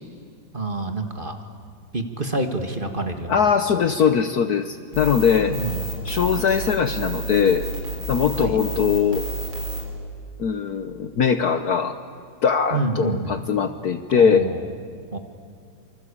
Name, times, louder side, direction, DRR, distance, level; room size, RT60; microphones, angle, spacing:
voice 1, 0.5-1.4 1.9-3.4 5.4-5.8 8.4-8.6 12.7-13.4 14.1-14.7 15.1-15.2, right 2 dB, 25° right, 6 dB, 1.7 m, -27 dB
voice 2, 3.3-5.6 6.0-7.7 8.1-9.2 10.4-12.0 12.4-14.5, left 7 dB, 55° left, 10 dB, 1.3 m, -21 dB
sound 1, 4.9-9.8, right 2 dB, 70° right, 6.0 m, -30 dB
27.5 x 25.5 x 8.6 m, 2.2 s
omnidirectional pair, 2.2 m